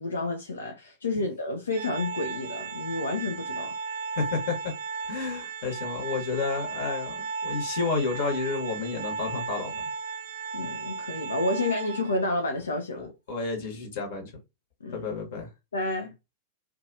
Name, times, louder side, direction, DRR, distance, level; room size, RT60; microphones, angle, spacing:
voice 1, 0.0-3.7 10.5-13.1 14.8-15.1 15.7-16.1, left 2 dB, 70° left, 0.4 m, -30 dB
Organ, 1.7-12.4, right 5 dB, 55° right, 0.3 m, -35 dB
voice 2, 4.2-4.7 5.1-9.8 13.0-14.3 14.9-15.5, left 4 dB, 55° left, 1.1 m, -31 dB
2.5 x 2.2 x 2.6 m
figure-of-eight pair, 90°, 0 cm